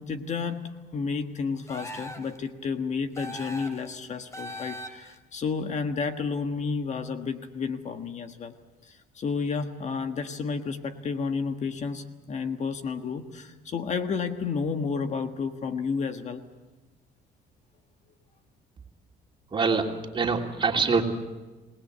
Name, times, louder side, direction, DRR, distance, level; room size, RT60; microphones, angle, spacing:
voice 1, 0.0-8.5 8.8-16.4, left 5 dB, 45° left, 7 dB, 1.5 m, -31 dB
sound 1, 1.7-2.4 3.1-3.9 4.3-5.2, left 1 dB, 15° left, 2.9 m, -39 dB
voice 2, 19.5-21.0, right 4 dB, 30° right, 2 dB, 3.0 m, -25 dB
27.0 x 19.0 x 8.1 m, 1.2 s
cardioid pair, 110°, 17 cm